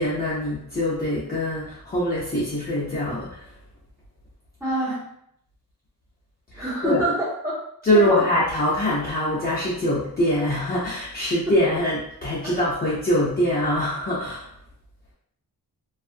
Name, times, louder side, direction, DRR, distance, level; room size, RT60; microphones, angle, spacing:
voice 1, 0.0-3.4 6.5-7.0 7.8-14.5, equal, 25° left, -9 dB, 0.6 m, -23 dB
voice 2, 4.6-5.0 6.6-7.5 7.9-8.2, right 1 dB, 10° right, -10 dB, 1.2 m, -26 dB
2.5 x 2.4 x 2.5 m, 0.73 s
wide cardioid pair, 140°, 37 cm